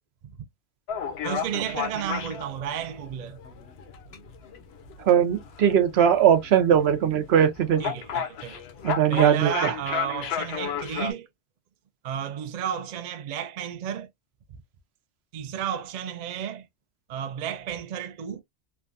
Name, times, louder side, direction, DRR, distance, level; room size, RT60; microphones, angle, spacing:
sound 1, 0.9-11.1, left 7 dB, 70° left, 0.8 m, -34 dB
voice 1, 1.2-3.4 7.8-8.6 9.1-11.3 12.0-14.1 15.3-16.7 17.1-18.4, right 9 dB, 55° right, 0.5 m, -32 dB
voice 2, 5.0-7.8 8.8-9.7, right 9 dB, 75° right, 0.8 m, -20 dB
3.2 x 2.2 x 2.4 m
omnidirectional pair, 1.1 m